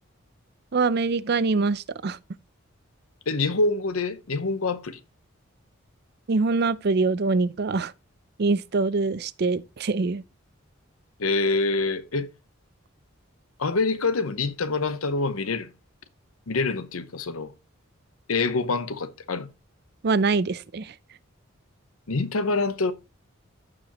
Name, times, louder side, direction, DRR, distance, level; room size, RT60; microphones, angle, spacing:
voice 1, 0.7-2.2 6.3-7.9 8.4-10.2 20.0-20.9, right 3 dB, 50° right, 0.5 m, -24 dB
voice 2, 3.3-5.0 11.2-12.3 13.6-15.7 16.5-17.5 18.3-19.5 22.1-22.9, left 3 dB, 90° left, 0.9 m, -26 dB
14.5 x 5.0 x 2.9 m
head